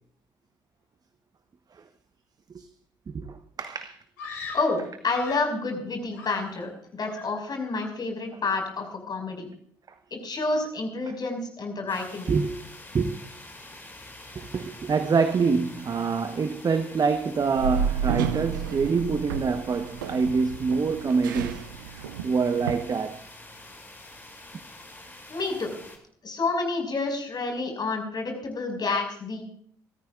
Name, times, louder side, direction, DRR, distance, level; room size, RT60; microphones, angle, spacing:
voice 1, 3.1-4.0 12.3-12.6 12.9-13.2 14.3-21.7 22.2-23.2, right 5 dB, 35° right, 1.2 m, -26 dB
Screaming, 4.2-5.6 6.1-6.8 7.1-7.5, left 4 dB, 80° left, 4.3 m, -40 dB
voice 2, 4.5-9.5 10.1-12.3 25.3-25.7 26.2-29.4, left 3 dB, 40° left, 5.7 m, -29 dB
sound 1, 11.9-26.0, left 2 dB, 20° left, 6.7 m, -46 dB
sound 2, 17.5-22.8, right 7 dB, 80° right, 0.8 m, -31 dB
26.0 x 14.0 x 2.5 m
figure-of-eight pair, 45°, 11 cm